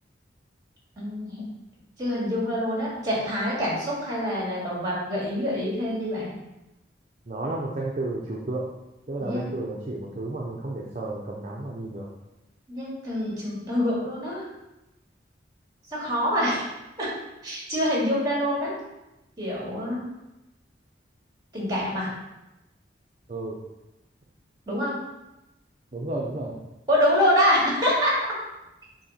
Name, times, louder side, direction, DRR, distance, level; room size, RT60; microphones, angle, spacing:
voice 1, 1.0-1.4 2.0-6.3 9.2-9.6 12.7-14.5 15.9-16.7 17.0-17.1 17.4-18.7 19.4-20.0 21.5-22.1 24.7-25.0 26.9-28.1, equal, 20° right, -5 dB, 2.3 m, -25 dB
voice 2, 7.3-8.7 9.1-12.1 23.3-23.6 25.9-26.6, right 2 dB, 40° right, -3 dB, 0.7 m, -32 dB
7.2 x 2.9 x 5.6 m, 0.96 s
head